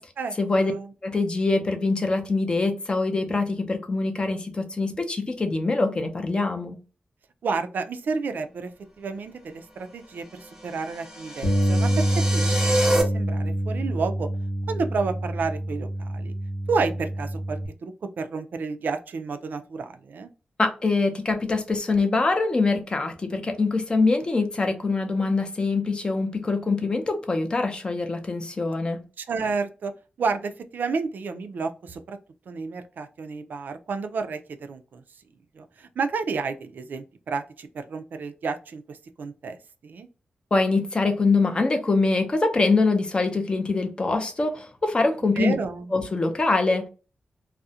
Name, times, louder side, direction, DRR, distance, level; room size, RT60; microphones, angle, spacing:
voice 1, 0.4-0.7 1.0-6.8 20.6-29.0 40.5-45.5 45.9-46.9, left 3 dB, 30° left, 0.5 m, -24 dB
voice 2, 7.4-8.7 9.0-11.9 12.3-14.3 14.7-16.3 16.7-20.3 29.2-29.9 30.2-32.2 32.5-35.0 35.5-39.6 39.8-40.1 45.4-45.9, right 4 dB, 70° right, 0.3 m, -31 dB
sound 1, 10.5-13.0, right 1 dB, 15° right, 0.7 m, -27 dB
Bass guitar, 11.4-17.7, right 1 dB, 75° left, 0.7 m, -26 dB
2.3 x 2.0 x 2.6 m
wide cardioid pair, 150°, 3 cm